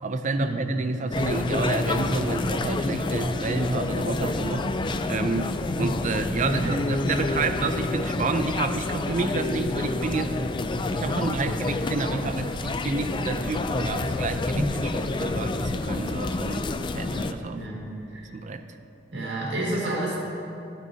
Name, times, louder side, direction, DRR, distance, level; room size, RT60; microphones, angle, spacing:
voice 1, 0.0-10.4 10.9-14.7 14.9-17.6 18.2-18.6, right 3 dB, 45° right, 8 dB, 0.4 m, -29 dB
sound 1, 1.1-17.3, left 2 dB, 25° left, 0.3 m, -28 dB
voice 2, 17.4-17.8 18.1-18.3 19.1-20.2, right 1 dB, 75° right, -4 dB, 1.9 m, -29 dB
12.5 x 9.0 x 2.7 m, 2.8 s
head